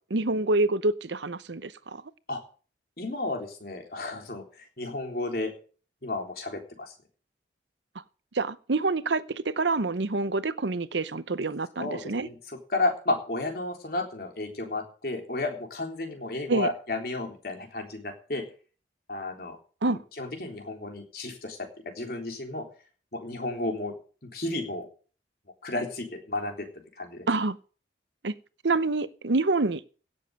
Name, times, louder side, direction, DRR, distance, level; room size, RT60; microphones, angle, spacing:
voice 1, 0.1-2.0 8.3-12.3 16.5-16.7 19.8-20.0 27.3-27.6 28.2-28.3 28.6-29.8, right 3 dB, 80° right, 0.8 m, -27 dB
voice 2, 3.0-5.5 6.0-6.9 11.8-12.4 12.7-18.4 19.1-19.6 20.2-21.6 21.9-22.7 23.1-23.9 24.2-24.9 25.6-26.7 27.0-27.3, left 2 dB, 55° left, 3.6 m, -32 dB
17.0 x 7.4 x 6.5 m
head